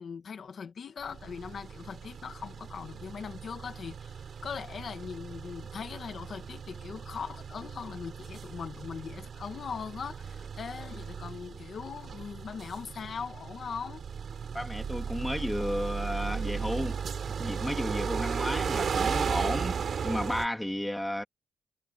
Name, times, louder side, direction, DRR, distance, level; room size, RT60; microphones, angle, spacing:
voice 1, 0.0-14.0, left 6 dB, 40° left, 1.8 m, -40 dB
sound 1, 1.0-20.5, right 6 dB, 45° right, 3.4 m, -36 dB
voice 2, 14.5-17.0 17.3-21.2, left 1 dB, 5° left, 2.3 m, -33 dB
wide cardioid pair, 170°, 0 cm